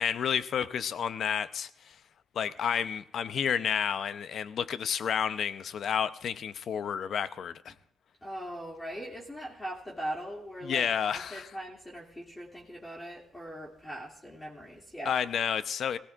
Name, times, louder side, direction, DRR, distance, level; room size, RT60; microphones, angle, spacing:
voice 1, 0.0-1.9 2.3-7.7 10.6-11.5 15.0-16.0, left 8 dB, 60° left, 0.7 m, -30 dB
voice 2, 8.2-15.1, right 1 dB, 15° left, 2.6 m, -40 dB
19.5 x 16.5 x 2.5 m
cardioid pair, 90°, 0 cm